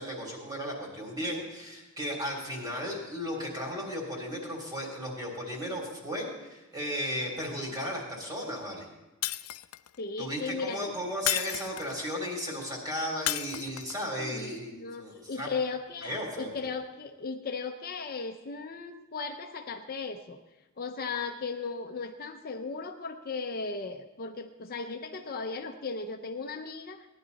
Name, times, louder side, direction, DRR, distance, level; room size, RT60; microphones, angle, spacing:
voice 1, 0.0-8.9 10.2-14.7 15.0-15.5 16.0-16.7, equal, 20° right, -1 dB, 3.5 m, -35 dB
Shatter, 9.2-10.0 11.3-12.1 13.3-14.0, left 15 dB, 80° left, 0.4 m, -32 dB
voice 2, 10.0-10.9 14.1-20.4 20.8-27.1, left 4 dB, 45° left, 5 dB, 0.7 m, -36 dB
17.5 x 11.0 x 4.1 m, 1.0 s
head